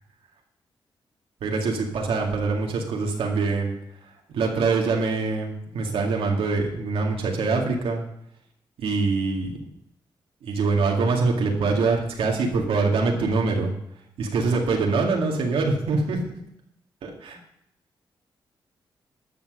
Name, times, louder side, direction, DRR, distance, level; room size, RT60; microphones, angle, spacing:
voice 1, 1.4-3.7 4.3-8.0 8.8-9.6 10.4-13.7 14.3-16.2 17.0-17.4, right 4 dB, 85° right, 0 dB, 2.2 m, -24 dB
12.5 x 6.2 x 6.3 m, 0.74 s
cardioid pair, 65°, 9 cm